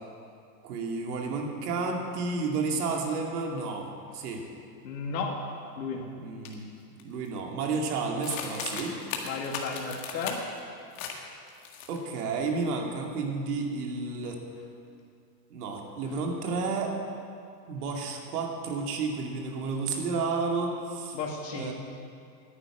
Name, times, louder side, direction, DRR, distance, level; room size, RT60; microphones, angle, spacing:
voice 1, 0.6-3.9 4.1-4.4 6.1-6.7 7.0-9.0 11.9-14.4 15.5-16.9 17.7-21.2 21.5-21.7, right 4 dB, 65° right, 1 dB, 2.5 m, -31 dB
voice 2, 4.8-5.4 5.8-6.1 9.2-10.4 21.1-21.7, left 4 dB, 85° left, 0 dB, 2.5 m, -33 dB
sound 1, 6.5-6.6 7.0-7.4 8.2-10.6 11.0-11.2 11.5-12.2, left 6 dB, 50° left, 1.9 m, -37 dB
11.0 x 10.0 x 8.9 m, 2.4 s
supercardioid pair, 170°, 49 cm